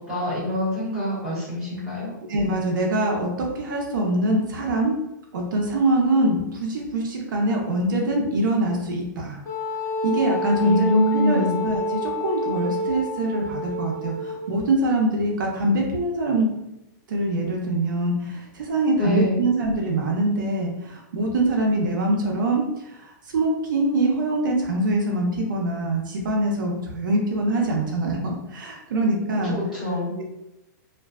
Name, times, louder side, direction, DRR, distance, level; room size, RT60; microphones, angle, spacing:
voice 1, 0.0-2.1 10.6-11.6 19.0-19.4 29.4-30.1, left 1 dB, 5° right, -11 dB, 1.1 m, -24 dB
voice 2, 2.3-5.0 5.3-9.4 10.0-16.5 17.1-22.6 22.9-23.0 23.3-29.6 30.2-30.3, right 1 dB, 80° right, 0 dB, 0.6 m, -24 dB
Wind instrument woodwind instrument, 9.5-14.6, equal, 40° left, 1.1 m, -28 dB
2.5 x 2.2 x 2.2 m, 0.88 s
hypercardioid pair, 170°, 11 cm